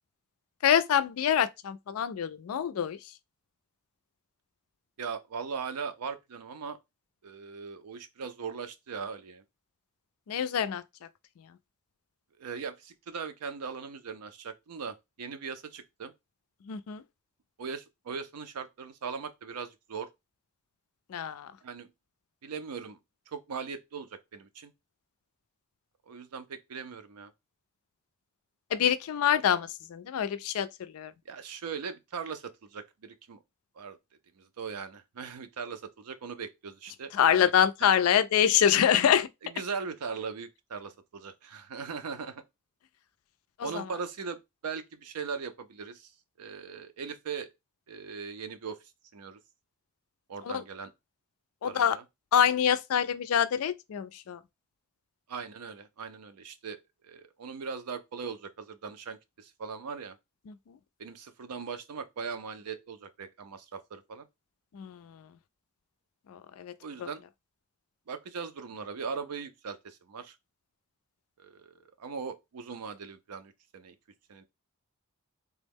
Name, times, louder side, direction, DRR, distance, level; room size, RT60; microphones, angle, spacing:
voice 1, 0.6-3.0 10.3-10.8 16.7-17.0 21.1-21.5 28.7-30.7 30.9-31.1 37.1-39.3 43.6-43.8 50.5-50.6 51.6-52.0 52.3-54.4 60.5-60.8 64.7-65.2 66.3-66.7 67.0-67.1, left 9 dB, 70° left, 0.3 m, -26 dB
voice 2, 5.0-6.8 7.2-9.4 12.4-16.1 17.6-20.1 21.6-21.9 22.4-23.0 23.3-24.7 26.1-27.3 31.3-33.4 33.8-34.0 34.4-37.5 37.8-37.9 39.4-42.4 43.6-46.1 46.4-47.5 47.9-48.8 49.1-49.4 50.3-50.9 51.6-52.0 55.3-60.2 61.0-64.3 66.8-67.2 68.1-70.3 71.4-73.9 74.3-74.4, right 5 dB, 90° right, 0.5 m, -39 dB
3.4 x 2.0 x 3.4 m
head